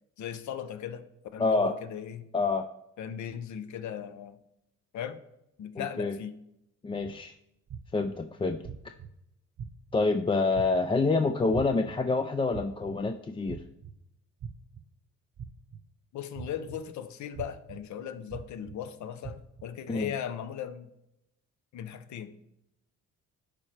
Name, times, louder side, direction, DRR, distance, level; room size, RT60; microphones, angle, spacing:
voice 1, 0.2-1.0 1.3-2.3 3.0-4.4 4.9-5.2 5.6-6.4 16.1-20.9 21.7-22.4, left 9 dB, 70° left, 11 dB, 0.7 m, -38 dB
voice 2, 1.4-1.7 2.3-2.7 5.8-6.2 6.8-7.3 7.9-8.6 9.9-13.6 19.9-20.1, left 3 dB, 20° left, 7 dB, 0.3 m, -27 dB
sound 1, 7.0-7.1 7.7-8.1 8.6-9.1 9.6-10.0 10.5-11.0 11.5-11.9 12.5-13.0 13.5-13.9 14.4-14.8 15.4-15.8 16.4-16.8 17.3-17.8 18.3-18.7 19.2-19.6, right 8 dB, 55° right, 0.9 m, -40 dB
11.5 x 4.4 x 3.3 m, 0.83 s
cardioid pair, 90°, 30 cm